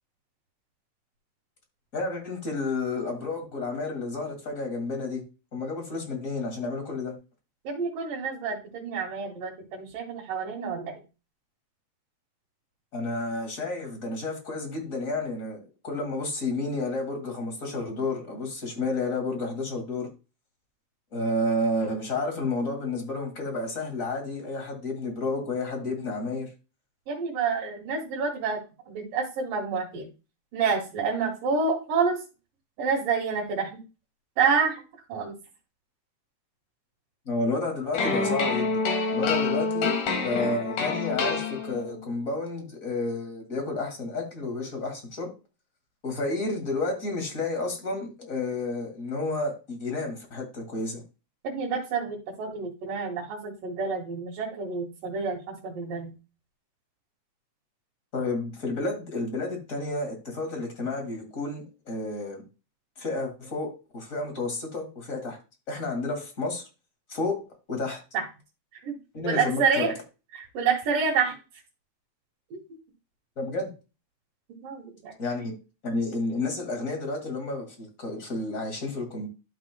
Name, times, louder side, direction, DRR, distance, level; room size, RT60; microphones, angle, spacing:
voice 1, 1.9-5.2 5.5-7.1 12.9-20.1 21.1-26.5 37.3-38.8 39.1-39.9 40.2-45.3 46.0-51.0 58.1-62.4 63.0-65.4 65.7-66.6 67.1-68.0 69.1-69.9 73.4-73.7 75.2-75.5 75.8-79.3, left 2 dB, 30° left, 2.0 m, -31 dB
voice 2, 7.6-11.0 27.1-28.6 28.9-30.1 30.5-32.2 32.8-33.8 34.4-34.8 35.1-35.3 51.4-56.1 68.1-68.2 68.8-69.0 69.2-69.9 70.3-71.3 72.5-72.6 74.6-75.1, right 5 dB, 85° right, 3.3 m, -28 dB
sound 1, 37.9-42.0, left 4 dB, 75° left, 3.2 m, -27 dB
12.0 x 6.0 x 2.2 m
omnidirectional pair, 3.7 m